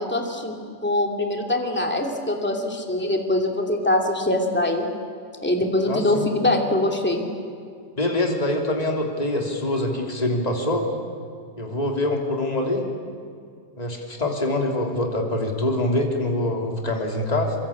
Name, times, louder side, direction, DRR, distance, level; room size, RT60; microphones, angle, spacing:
voice 1, 0.0-4.9 5.4-7.3, left 1 dB, 5° left, 2 dB, 2.6 m, -23 dB
voice 2, 5.9-6.3 8.0-10.9 11.6-12.8 13.8-17.5, left 1 dB, 20° left, 1 dB, 3.2 m, -24 dB
26.0 x 24.0 x 8.7 m, 2.3 s
omnidirectional pair, 1.8 m